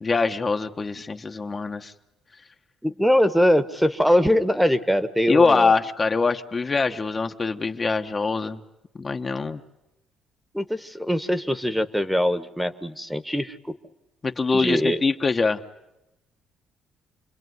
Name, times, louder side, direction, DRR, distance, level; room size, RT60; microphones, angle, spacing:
voice 1, 0.0-1.9 5.3-8.6 8.9-9.6 14.2-15.6, left 4 dB, 30° left, 5 dB, 1.2 m, -23 dB
voice 2, 2.8-5.7 10.5-13.8 14.5-15.0, equal, ahead, 12 dB, 1.4 m, -22 dB
27.5 x 21.5 x 9.6 m, 0.93 s
cardioid pair, 95°, 0 cm